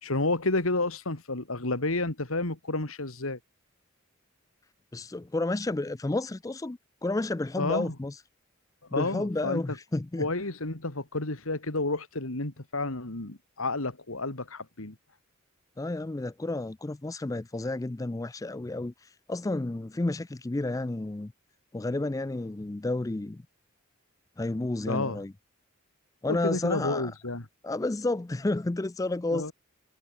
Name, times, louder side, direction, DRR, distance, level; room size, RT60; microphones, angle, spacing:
voice 1, 0.0-3.4 7.6-7.9 8.9-9.6 10.2-15.0 24.9-25.2 26.3-27.4 29.3-29.5, left 2 dB, 85° left, 2.6 m, -30 dB
voice 2, 4.9-8.2 8.9-10.3 15.8-21.3 21.7-23.4 24.4-25.3 26.2-27.1 27.6-29.5, left 2 dB, 15° left, 0.4 m, -31 dB
head